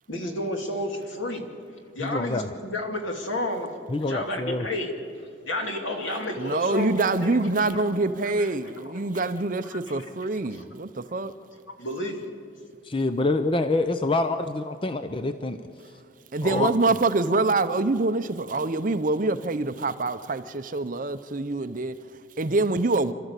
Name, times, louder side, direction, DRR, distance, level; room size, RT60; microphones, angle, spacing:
voice 1, 0.1-1.4 1.9-4.9 5.4-7.4 8.8-9.2 9.7-10.0 10.5-10.6 11.8-12.3, left 1 dB, 75° left, 2.6 m, -31 dB
voice 2, 2.0-2.5 3.9-4.6 12.8-15.6 16.4-16.7, left 2 dB, 25° left, 0.6 m, -26 dB
voice 3, 6.4-11.3 16.3-23.1, right 3 dB, 40° right, 0.7 m, -25 dB
28.5 x 13.0 x 8.2 m
head